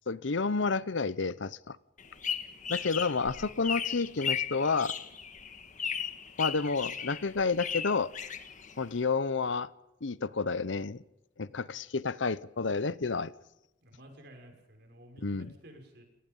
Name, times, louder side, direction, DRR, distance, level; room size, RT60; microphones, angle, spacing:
voice 1, 0.1-1.8 2.7-4.9 6.4-8.1 8.8-9.7 10.0-11.0 11.4-13.3 15.2-15.5, left 4 dB, 75° left, 18 dB, 0.8 m, -30 dB
sound 1, 2.0-9.0, left 7 dB, 40° left, 1.8 m, -36 dB
voice 2, 13.8-16.0, equal, 60° right, 4 dB, 6.1 m, -52 dB
30.0 x 18.5 x 5.5 m, 0.93 s
head